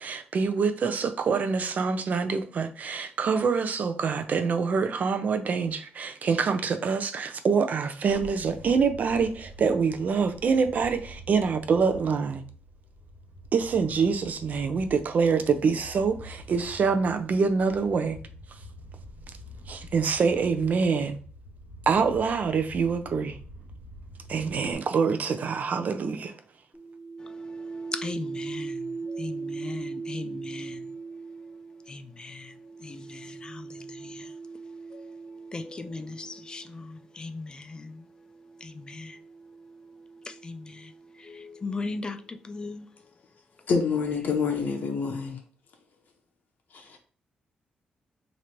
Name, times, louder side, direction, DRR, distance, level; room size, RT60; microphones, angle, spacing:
voice 1, 0.0-12.4 13.5-18.2 19.7-21.2 21.9-23.4 24.3-26.3, right 5 dB, 55° right, 0.5 m, -25 dB
sound 1, 8.0-24.7, equal, 90° right, 1.1 m, -46 dB
sound 2, 26.7-37.1 38.0-41.7, right 4 dB, 10° right, 0.9 m, -40 dB
voice 2, 27.2-31.0 31.9-32.5 32.8-34.3 34.9-35.1 35.5-38.0 38.6-39.2 40.3-40.9 41.2-42.9, left 3 dB, 25° left, 0.4 m, -38 dB
voice 3, 43.7-45.4 46.7-47.0, left 5 dB, 65° left, 0.7 m, -27 dB
3.0 x 2.6 x 4.4 m
cardioid pair, 100°, 3 cm